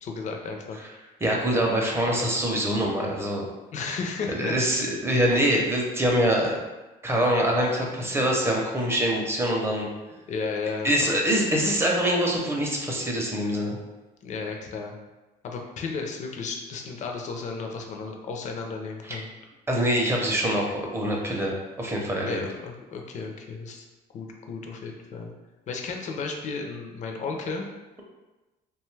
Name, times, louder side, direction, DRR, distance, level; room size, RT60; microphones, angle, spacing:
voice 1, 0.0-0.8 3.7-4.6 5.5-5.7 10.3-11.2 14.2-15.0 15.4-19.3 22.3-23.9 24.1-25.3 25.7-27.7, left 4 dB, 45° left, 2 dB, 0.5 m, -33 dB
voice 2, 1.2-3.5 4.3-6.6 7.0-9.9 10.8-13.8 19.0-19.2 19.7-22.4, equal, 15° right, -1 dB, 0.6 m, -24 dB
2.7 x 2.3 x 3.1 m, 1.1 s
cardioid pair, 110°, 17 cm